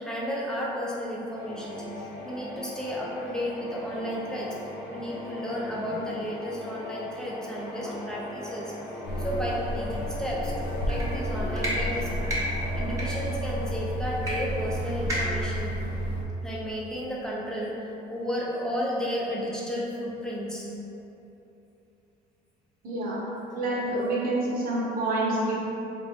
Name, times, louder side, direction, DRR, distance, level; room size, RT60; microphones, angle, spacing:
voice 1, 0.0-4.6 4.9-8.8 9.2-12.2 12.7-15.8 16.4-20.7 23.8-23.9, equal, 5° left, -5 dB, 0.7 m, -33 dB
sound 1, 1.3-15.2, left 1 dB, 90° left, 1.4 m, -41 dB
sound 2, 9.0-16.2, equal, 70° left, 0.6 m, -31 dB
sound 3, 10.9-11.1 11.5-11.7 12.2-12.4 12.9-13.1 14.2-14.3 14.6-14.7 15.1-15.4, equal, 20° right, 1.0 m, -30 dB
voice 2, 22.8-23.2 23.5-25.6, right 2 dB, 60° right, -4 dB, 1.0 m, -27 dB
3.7 x 2.3 x 4.3 m, 2.9 s
cardioid pair, 110°, 17 cm